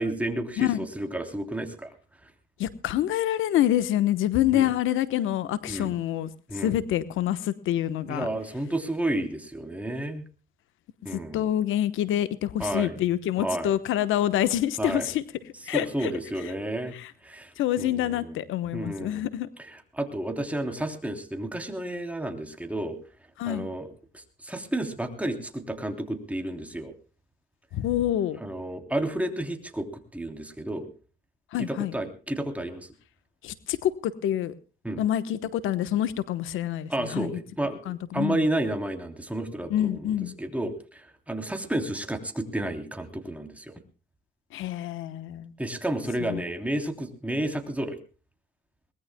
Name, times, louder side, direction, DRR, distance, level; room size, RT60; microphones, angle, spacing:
voice 1, 0.0-1.9 4.5-4.7 5.7-5.9 6.5-6.8 8.1-10.2 11.0-11.5 12.6-13.0 13.4-13.7 14.8-15.1 15.7-16.9 17.2-17.5 17.8-18.4 18.7-19.2 19.9-23.0 23.5-23.9 24.1-26.9 28.4-29.9 30.1-30.9 31.6-32.9 34.8-35.0 36.9-40.1 40.4-43.7 45.6-48.0, right 1 dB, 5° right, 6 dB, 3.2 m, -31 dB
voice 2, 2.6-8.3 11.1-15.2 15.7-16.1 16.9-17.1 17.6-19.5 23.4-23.8 27.7-28.4 31.5-31.9 33.4-34.5 35.0-37.4 37.8-38.5 39.7-40.3 44.5-45.5 46.3-46.4, left 12 dB, 85° left, 14 dB, 1.1 m, -27 dB
22.5 x 19.5 x 2.2 m, 0.36 s
cardioid pair, 90°, 20 cm